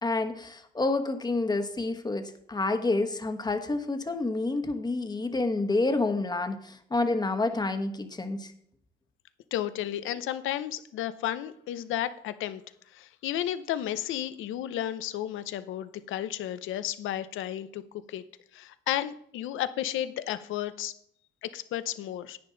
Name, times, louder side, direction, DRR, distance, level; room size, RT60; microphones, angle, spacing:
voice 1, 0.0-8.5, left 2 dB, 20° left, 7 dB, 1.2 m, -28 dB
voice 2, 9.5-12.6 12.9-17.8 18.1-18.2 18.5-20.9 21.4-22.4, left 12 dB, 85° left, 13 dB, 0.7 m, -33 dB
10.5 x 9.4 x 3.9 m, 0.69 s
cardioid pair, 90°, 20 cm